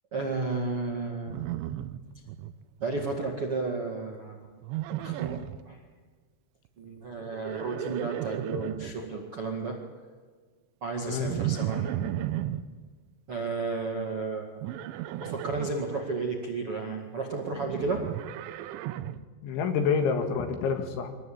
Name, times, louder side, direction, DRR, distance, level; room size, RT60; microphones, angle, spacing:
voice 1, 0.1-1.4 2.8-4.4 5.0-5.4 5.7-5.8 6.8-9.8 10.8-12.0 13.3-14.5 15.2-18.0, right 3 dB, 45° right, 0 dB, 1.8 m, -32 dB
Livestock farm animals working animals, 1.3-2.5 2.8-3.3 4.6-5.6 7.2-8.9 11.2-12.6 14.6-15.7 17.5-19.2, right 12 dB, 80° right, 3.0 m, -34 dB
voice 2, 11.0-11.3 19.4-21.1, left 6 dB, 70° left, 6 dB, 4.0 m, -27 dB
24.5 x 19.5 x 8.7 m, 1.5 s
omnidirectional pair, 5.8 m